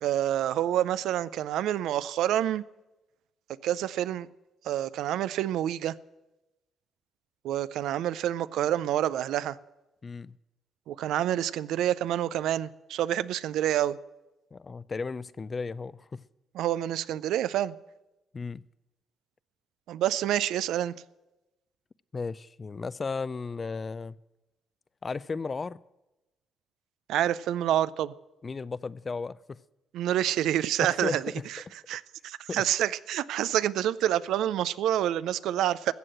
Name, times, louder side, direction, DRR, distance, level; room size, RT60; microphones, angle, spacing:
voice 1, 0.0-2.6 3.6-4.3 4.6-5.9 7.4-9.6 10.9-14.0 16.5-17.7 19.9-20.9 27.1-28.1 29.9-31.2 31.5-31.6 31.9-35.9, right 11 dB, 85° right, 0.4 m, -27 dB
voice 2, 10.0-10.4 14.5-16.2 18.3-18.6 22.1-24.2 25.0-25.8 28.4-29.6 30.8-31.4 32.5-32.6, left 4 dB, 35° left, 0.4 m, -35 dB
14.0 x 7.8 x 7.7 m
cardioid pair, 90°, 0 cm